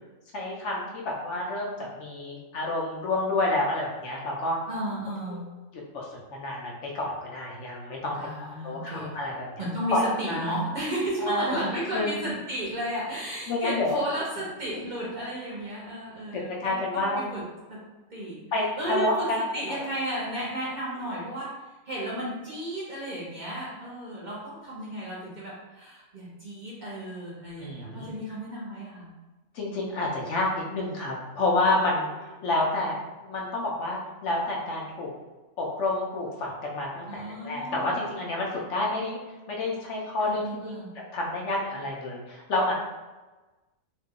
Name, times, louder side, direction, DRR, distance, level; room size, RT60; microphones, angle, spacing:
voice 1, 0.3-4.6 5.3-5.4 5.9-9.6 9.9-10.5 11.2-11.6 11.9-12.2 13.5-14.0 16.6-17.3 18.5-19.4 19.7-19.9 27.6-28.1 29.5-35.1 35.6-39.2 39.5-40.8 41.1-42.7, left 2 dB, 65° left, -2 dB, 0.9 m, -29 dB
voice 2, 4.7-5.4 8.2-9.2 9.6-17.1 17.3-17.4 17.7-17.8 18.1-18.4 18.8-21.5 21.8-29.1 32.4-32.5 37.1-38.0 40.2-40.9, right 1 dB, 40° right, -7 dB, 0.9 m, -33 dB
2.9 x 2.2 x 3.6 m, 1.2 s
omnidirectional pair, 1.4 m